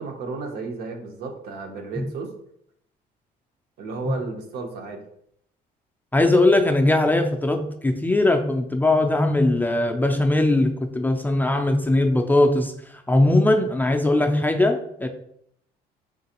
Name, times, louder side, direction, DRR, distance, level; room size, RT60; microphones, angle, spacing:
voice 1, 0.0-2.3 3.8-5.0, right 4 dB, 75° right, 3 dB, 0.8 m, -33 dB
voice 2, 6.1-15.1, left 2 dB, 10° left, 3 dB, 0.3 m, -20 dB
3.8 x 3.2 x 2.9 m, 0.71 s
cardioid pair, 110°, 17 cm